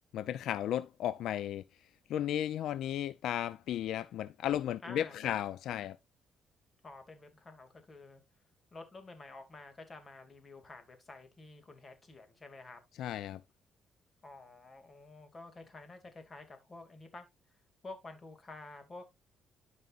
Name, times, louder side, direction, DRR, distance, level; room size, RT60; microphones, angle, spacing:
voice 1, 0.1-1.6 2.1-6.0 13.0-13.4, left 11 dB, 80° left, 0.4 m, -34 dB
voice 2, 4.8-5.4 6.8-8.2 8.7-12.8 14.2-17.3 17.8-19.1, left 2 dB, 30° left, 2.3 m, -50 dB
12.5 x 5.3 x 2.4 m
cardioid pair, 90°, 0 cm